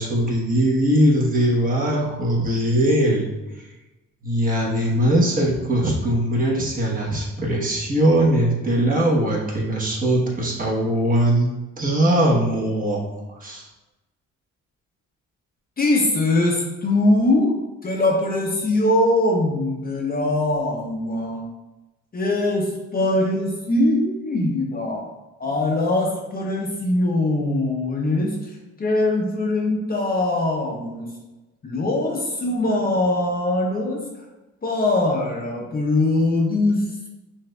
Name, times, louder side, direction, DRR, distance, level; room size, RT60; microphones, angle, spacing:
voice 1, 0.0-3.3 4.2-11.5 11.8-13.0 13.4-13.6, right 1 dB, 30° right, -3 dB, 1.0 m, -20 dB
voice 2, 15.8-17.6 17.8-21.4 22.1-25.1 25.4-28.4 28.8-31.1 31.6-34.0 34.6-36.8, left 2 dB, 30° left, -1 dB, 0.6 m, -22 dB
5.7 x 2.5 x 2.2 m, 1.1 s
cardioid pair, 90°, 30 cm